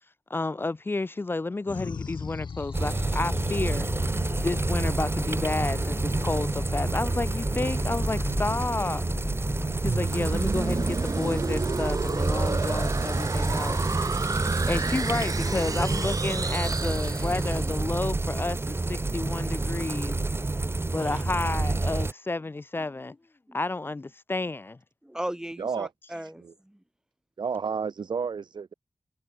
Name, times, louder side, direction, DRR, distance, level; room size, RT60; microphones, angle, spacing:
voice 1, 0.3-3.9 4.4-9.0 9.8-13.8 14.7-20.2 20.9-23.2 23.5-24.8, left 2 dB, 30° left, 0.5 m, -31 dB
sound 1, 1.7-12.3, left 5 dB, 75° left, 2.3 m, -38 dB
sound 2, 2.7-22.1, right 2 dB, 30° right, 1.8 m, -28 dB
sound 3, 9.8-17.7, right 4 dB, 50° right, 1.7 m, -31 dB
voice 2, 25.0-26.8, right 1 dB, 10° right, 1.3 m, -37 dB
voice 3, 25.6-25.9 26.4-26.5 27.4-28.7, right 6 dB, 75° right, 0.8 m, -31 dB
wide cardioid pair, 85°, 8 cm